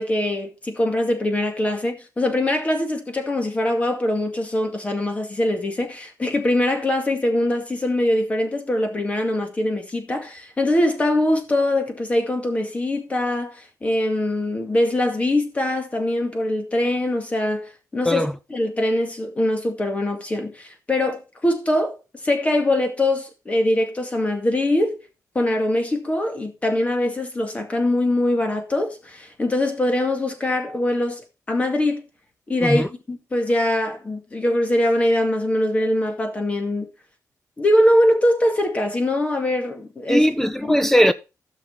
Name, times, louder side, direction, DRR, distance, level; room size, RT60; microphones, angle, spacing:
voice 1, 0.0-21.9 22.2-25.0 25.3-31.2 31.5-32.0 32.5-36.9 37.6-40.3 40.7-40.8, left 1 dB, 20° left, 2.2 m, -22 dB
voice 2, 40.1-41.1, equal, 5° left, 0.4 m, -18 dB
15.5 x 6.1 x 4.2 m
wide cardioid pair, 155°, 6 cm